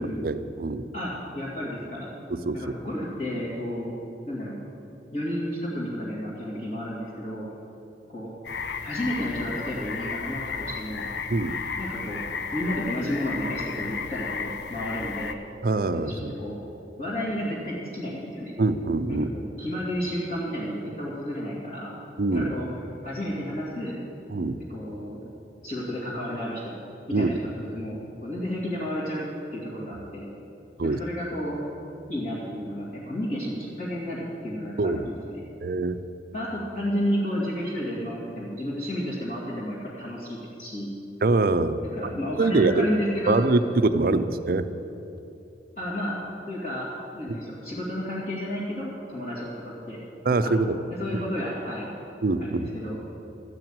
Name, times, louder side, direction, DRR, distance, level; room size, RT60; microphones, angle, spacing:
voice 1, 0.0-0.9 2.3-2.6 11.3-11.6 15.6-16.4 18.6-19.3 22.2-22.5 24.3-24.6 27.1-27.3 30.8-31.0 34.8-35.1 35.6-36.0 41.2-42.1 42.4-42.9 43.3-44.7 50.2-50.8 52.2-52.7, right 3 dB, 55° right, 11 dB, 0.5 m, -24 dB
voice 2, 0.9-2.1 2.5-3.9 4.3-4.6 5.1-7.5 8.1-8.3 8.8-11.1 11.8-12.2 12.5-15.4 15.9-16.6 17.0-18.5 19.1-21.9 22.3-22.7 23.0-24.1 24.7-25.2 25.6-26.7 27.1-29.3 29.5-30.3 30.8-31.6 32.1-35.4 36.3-40.9 41.8-43.4 44.0-44.2 45.8-46.1 46.5-46.9 47.1-50.0 50.4-50.5 51.0-51.9 52.4-53.0, equal, 45° left, -9 dB, 2.3 m, -32 dB
sound 1, 8.4-15.3, left 5 dB, 80° left, 0.6 m, -33 dB
13.5 x 5.9 x 8.9 m, 2.8 s
head